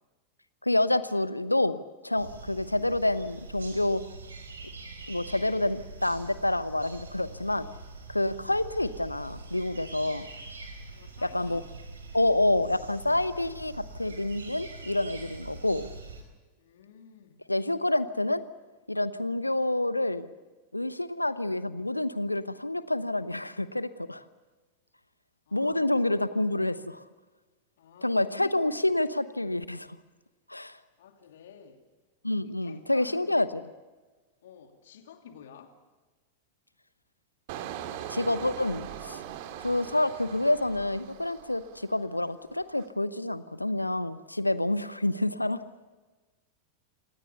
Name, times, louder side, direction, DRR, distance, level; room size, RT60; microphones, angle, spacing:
voice 1, 0.6-4.0 5.1-7.7 8.1-10.3 11.3-11.6 12.1-15.9 17.5-18.4 18.9-20.3 20.7-24.2 25.5-27.0 28.0-29.9 30.5-30.8 32.2-33.5 38.1-39.2 39.6-45.6, left 1 dB, 85° left, 15 dB, 0.9 m, -28 dB
sound 1, 2.2-16.2, right 3 dB, 75° right, 4.3 m, -44 dB
voice 2, 10.9-11.6 16.6-17.4 25.5-26.5 27.8-29.0 31.0-31.8 32.4-33.5 34.4-35.8, left 7 dB, 60° left, 6 dB, 2.6 m, -51 dB
Engine, 37.5-42.1 42.5-42.9, right 10 dB, 50° right, 2.4 m, -41 dB
26.5 x 19.0 x 6.9 m, 1.3 s
figure-of-eight pair, 90°, 0 cm